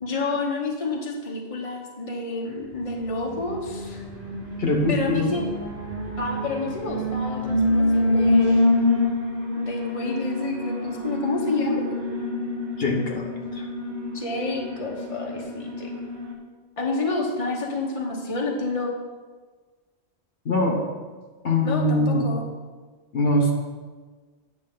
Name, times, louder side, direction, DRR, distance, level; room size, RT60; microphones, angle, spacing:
voice 1, 0.0-4.0 4.9-5.4 6.2-8.6 9.6-12.0 14.1-15.9 16.8-18.9 21.6-22.4, left 3 dB, 35° left, 0 dB, 1.1 m, -29 dB
Alarm, 2.9-16.3, left 2 dB, 75° right, 1.8 m, -26 dB
voice 2, 4.6-5.3 12.8-13.2 13.5-13.7 20.4-20.8 21.4-22.2 23.1-23.5, left 1 dB, 65° left, 1 dB, 1.3 m, -22 dB
9.0 x 6.8 x 3.8 m, 1.4 s
omnidirectional pair, 1.1 m